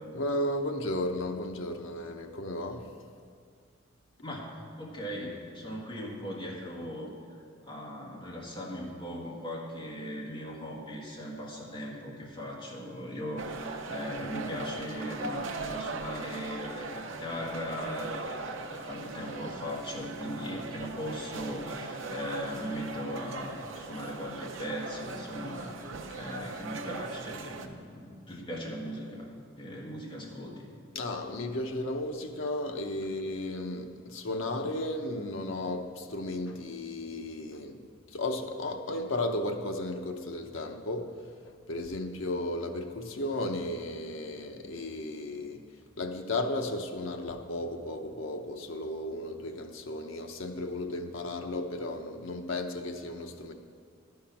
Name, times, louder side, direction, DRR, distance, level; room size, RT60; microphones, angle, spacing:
voice 1, 0.1-2.9 26.1-26.2 30.9-45.7 46.0-53.5, left 1 dB, 75° left, 4 dB, 0.8 m, -34 dB
voice 2, 4.2-7.1 7.7-30.7, equal, 25° left, -3 dB, 1.6 m, -38 dB
sound 1, 13.4-27.7, right 3 dB, 70° right, 0.7 m, -40 dB
11.5 x 5.7 x 5.8 m, 2.1 s
head